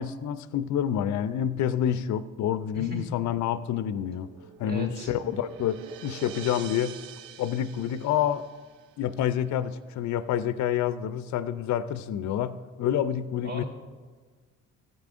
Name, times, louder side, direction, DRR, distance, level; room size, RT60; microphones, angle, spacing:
voice 1, 0.0-4.3 4.6-7.0 7.4-8.5 9.0-13.6, left 10 dB, 55° left, 14 dB, 0.5 m, -28 dB
sound 1, 3.8-9.0, right 9 dB, 85° right, 0.5 m, -45 dB
voice 2, 4.6-5.1 13.4-13.7, right 1 dB, 35° right, -6 dB, 2.9 m, -35 dB
14.5 x 8.6 x 2.5 m, 1.4 s
hypercardioid pair, 55°, 36 cm